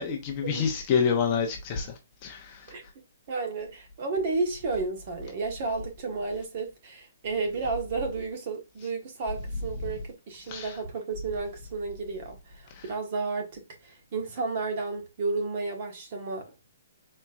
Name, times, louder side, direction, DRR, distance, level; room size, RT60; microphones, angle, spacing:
voice 1, 0.0-1.9 2.2-2.4 10.5-10.6, left 6 dB, 25° left, 0.9 m, -27 dB
voice 2, 3.3-16.7, right 3 dB, 35° right, 1.2 m, -32 dB
4.4 x 4.3 x 2.4 m
hypercardioid pair, 175°, 0 cm